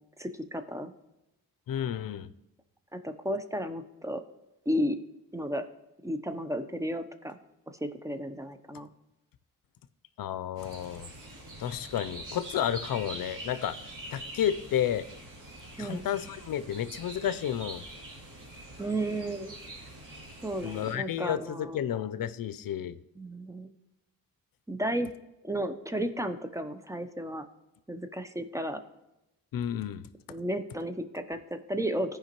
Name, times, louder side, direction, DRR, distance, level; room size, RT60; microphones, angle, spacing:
voice 1, 0.2-0.9 2.9-4.2 4.7-5.0 5.3-5.6 6.0-7.4 7.7-8.9 15.8-16.1 18.8-19.5 20.4-21.8 23.2-23.7 24.7-25.1 25.4-27.4 27.9-28.8 30.3-32.2, equal, 10° right, 9 dB, 0.7 m, -33 dB
voice 2, 1.7-2.3 10.2-11.1 11.6-15.1 15.8-17.8 20.6-23.0 29.5-30.1, left 10 dB, 65° left, 14 dB, 0.6 m, -31 dB
sound 1, 10.6-20.9, right 1 dB, 60° right, 2.5 m, -44 dB
14.5 x 5.1 x 3.0 m, 0.92 s
cardioid pair, 60°, 36 cm